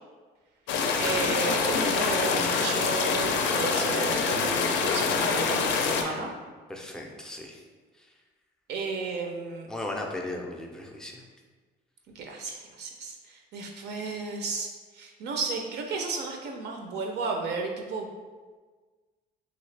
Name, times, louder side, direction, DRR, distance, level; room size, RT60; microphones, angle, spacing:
sound 1, 0.7-6.0, left 5 dB, 75° left, 0.4 m, -25 dB
voice 1, 1.0-6.3 8.7-9.7 12.2-18.1, right 4 dB, 65° right, 2 dB, 0.4 m, -33 dB
voice 2, 6.0-6.3 6.7-7.6 9.7-11.2, left 1 dB, 5° left, 0 dB, 0.3 m, -37 dB
3.1 x 2.8 x 3.2 m, 1.4 s
cardioid pair, 155°, 19 cm